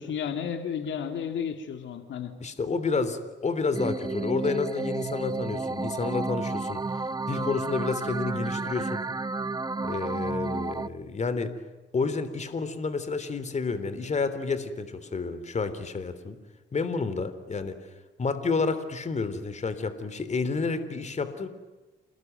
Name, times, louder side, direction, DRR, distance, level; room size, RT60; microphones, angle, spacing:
voice 1, 0.0-2.3, left 7 dB, 70° left, 7 dB, 2.6 m, -32 dB
voice 2, 2.4-6.8 7.3-9.0 9.8-11.5 11.9-16.4 16.7-17.8 18.2-21.5, left 4 dB, 35° left, 12 dB, 3.4 m, -30 dB
sound 1, 3.7-10.9, right 3 dB, 20° right, 1.0 m, -31 dB
29.0 x 20.0 x 9.3 m, 1.2 s
cardioid pair, 90°, 20 cm